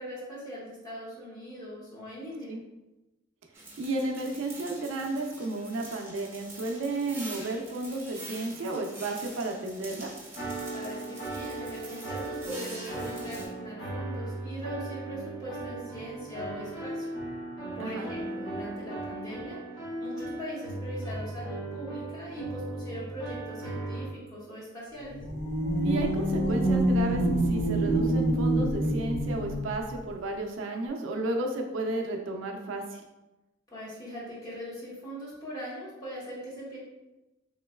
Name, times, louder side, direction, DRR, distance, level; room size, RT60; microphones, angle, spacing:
voice 1, 0.0-2.5 10.7-17.1 17.7-25.2 33.7-36.8, equal, 20° left, -7 dB, 1.1 m, -40 dB
sound 1, 3.5-13.5, right 2 dB, 10° right, 0.7 m, -45 dB
voice 2, 3.8-10.1 17.8-18.1 25.8-33.0, right 2 dB, 70° right, 2 dB, 0.4 m, -33 dB
sound 2, 10.3-24.1, right 2 dB, 85° left, 1.1 m, -37 dB
ghostly moan, 25.0-29.8, right 1 dB, 55° left, 0.6 m, -26 dB
3.6 x 3.0 x 2.2 m, 1.0 s
head